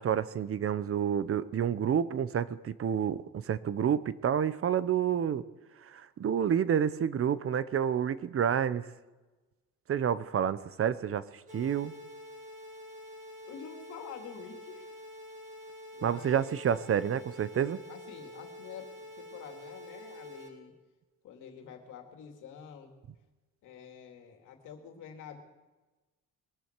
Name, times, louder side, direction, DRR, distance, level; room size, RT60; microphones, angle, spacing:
voice 1, 0.0-5.4 5.8-8.9 9.9-11.2 11.5-11.9 16.0-17.8, right 8 dB, 45° right, 16 dB, 0.8 m, -29 dB
sound 1, 11.5-20.5, left 1 dB, 25° right, 6.1 m, -47 dB
voice 2, 13.5-15.0 15.9-16.7 17.9-20.8 21.2-22.9 23.6-25.4, left 7 dB, 90° left, 3 dB, 2.5 m, -48 dB
22.0 x 13.5 x 4.6 m, 1.2 s
cardioid pair, 90°, 30 cm